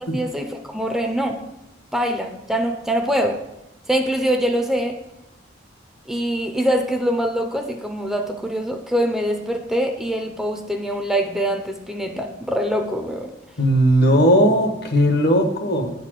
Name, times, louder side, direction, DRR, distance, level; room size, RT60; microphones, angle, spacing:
voice 1, 0.0-1.4 1.9-3.4 3.9-5.0 6.1-13.3, equal, ahead, 4 dB, 0.5 m, -23 dB
voice 2, 13.6-15.9, equal, 60° left, 6 dB, 1.0 m, -17 dB
8.5 x 4.2 x 6.4 m, 0.92 s
head